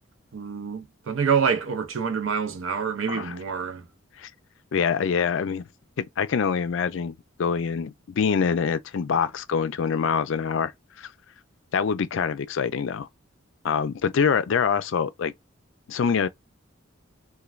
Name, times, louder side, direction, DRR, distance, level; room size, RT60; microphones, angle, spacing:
voice 1, 0.3-3.9, right 6 dB, 75° right, 0.5 m, -26 dB
voice 2, 4.7-5.7 6.0-10.7 11.0-11.1 11.7-13.1 13.6-15.3 15.9-16.3, left 6 dB, 65° left, 0.4 m, -25 dB
3.2 x 2.2 x 2.3 m
head